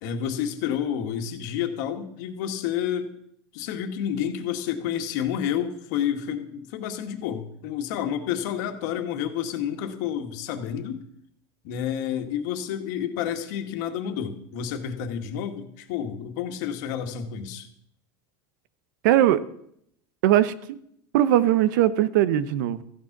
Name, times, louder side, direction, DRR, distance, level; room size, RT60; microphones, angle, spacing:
voice 1, 0.0-3.2 3.5-11.0 11.6-17.7, left 9 dB, 65° left, 6 dB, 1.9 m, -30 dB
voice 2, 19.0-19.4 20.2-20.8 21.1-22.8, right 12 dB, 80° right, 15 dB, 1.0 m, -20 dB
14.5 x 10.0 x 6.0 m, 0.71 s
supercardioid pair, 150°, 10 cm